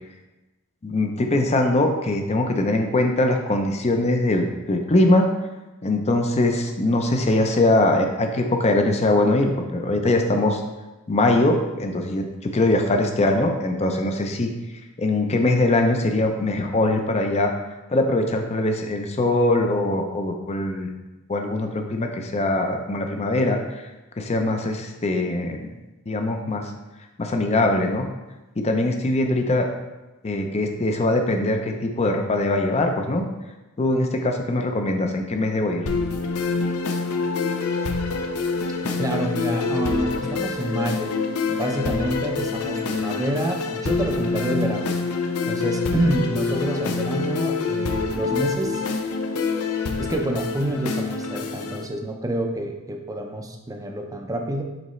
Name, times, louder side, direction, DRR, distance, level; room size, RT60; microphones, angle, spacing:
voice 1, 0.8-5.3 5.8-10.6 11.1-14.5 15.0-17.5 17.9-20.9 21.3-23.8 24.2-25.7 26.1-26.7 27.2-28.1 28.6-29.7 30.2-33.2 33.8-35.9, left 2 dB, 30° left, 4 dB, 0.5 m, -22 dB
sound 1, 35.9-51.9, left 4 dB, 75° left, 0.6 m, -26 dB
voice 2, 39.0-41.1 41.5-44.9 45.5-48.8 50.0-54.6, right 1 dB, 15° right, 3 dB, 0.6 m, -27 dB
7.7 x 4.0 x 3.1 m, 1.1 s
head